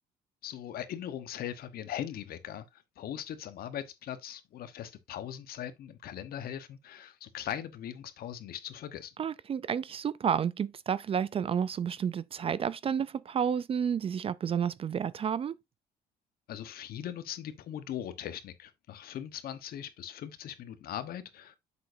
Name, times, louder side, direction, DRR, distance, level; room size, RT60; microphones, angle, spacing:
voice 1, 0.4-9.1 16.5-21.6, left 10 dB, 65° left, 1.1 m, -40 dB
voice 2, 9.2-15.5, right 7 dB, 35° right, 0.4 m, -31 dB
7.5 x 6.2 x 2.7 m
cardioid pair, 110°, 17 cm